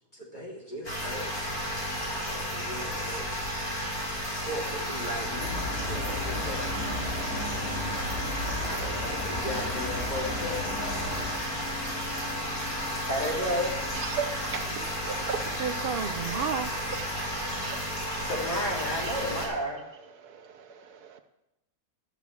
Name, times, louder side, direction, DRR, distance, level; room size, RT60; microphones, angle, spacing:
voice 1, 0.1-1.4 2.0-3.3 4.2-7.0 8.6-10.5 13.1-13.8 18.2-19.8, equal, 30° left, -3 dB, 3.5 m, -34 dB
sound 1, 0.8-19.5, equal, 75° left, 4.1 m, -33 dB
sound 2, 5.0-18.4, left 4 dB, 10° right, 3.4 m, -48 dB
sound 3, 5.4-11.3, left 1 dB, 50° left, 2.8 m, -35 dB
voice 2, 13.9-15.6 16.9-18.3 18.8-19.5 20.2-21.2, right 7 dB, 85° right, 8 dB, 1.6 m, -38 dB
voice 3, 15.6-16.8, right 7 dB, 60° right, 8 dB, 0.6 m, -31 dB
12.5 x 7.1 x 8.3 m, 0.89 s
omnidirectional pair, 1.6 m